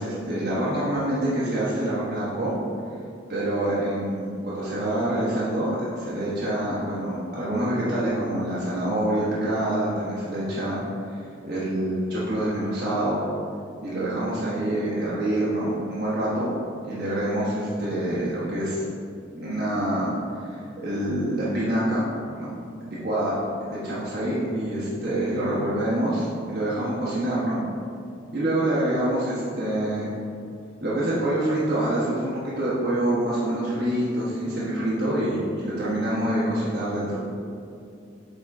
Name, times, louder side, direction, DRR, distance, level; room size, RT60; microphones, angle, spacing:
voice 1, 0.0-2.5 3.3-10.8 11.1-13.2 13.8-16.5 16.8-18.8 19.3-22.0 22.4-22.5 22.8-27.6 28.3-30.1 30.8-37.2, right 1 dB, 55° right, -9 dB, 1.2 m, -26 dB
8.8 x 4.0 x 3.6 m, 2.5 s
head